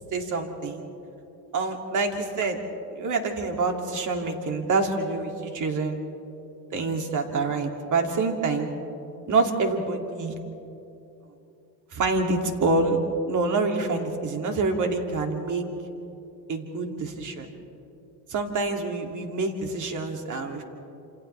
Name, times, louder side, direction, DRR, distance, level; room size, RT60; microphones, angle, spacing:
voice 1, 0.1-0.9 1.5-2.6 2.9-6.0 6.7-8.7 9.3-10.3 11.9-13.0 13.3-15.7 16.5-17.5 18.3-20.6, right 3 dB, 40° right, 3 dB, 2.7 m, -26 dB
28.0 x 28.0 x 3.4 m, 2.9 s
supercardioid pair, 105°, 47 cm